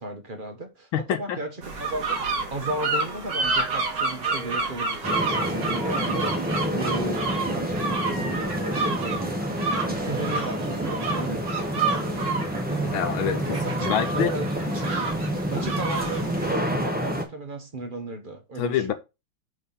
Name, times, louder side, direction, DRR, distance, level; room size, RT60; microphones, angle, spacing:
voice 1, 0.0-6.4 6.7-9.4 9.9-12.5 13.5-14.9 15.5-18.9, right 2 dB, 35° right, 0.8 m, -35 dB
voice 2, 0.9-1.4 12.9-14.3 18.6-18.9, left 9 dB, 75° left, 1.6 m, -26 dB
sound 1, 1.6-16.5, right 3 dB, 55° right, 2.4 m, -30 dB
sound 2, 3.4-10.8, right 3 dB, 90° right, 2.2 m, -43 dB
sound 3, 5.0-17.2, equal, 5° right, 0.8 m, -28 dB
6.1 x 4.5 x 5.3 m
omnidirectional pair, 2.3 m